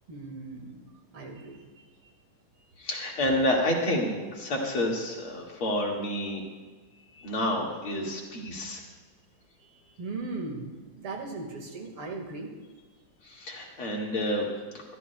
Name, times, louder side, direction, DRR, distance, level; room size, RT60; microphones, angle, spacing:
voice 1, 0.1-0.8 1.1-1.8 10.0-12.5, right 3 dB, 90° right, 2 dB, 2.8 m, -38 dB
voice 2, 2.8-6.4 7.2-8.8 13.2-14.5, left 1 dB, 80° left, -2 dB, 3.0 m, -29 dB
23.5 x 13.0 x 2.3 m, 1.4 s
omnidirectional pair, 2.3 m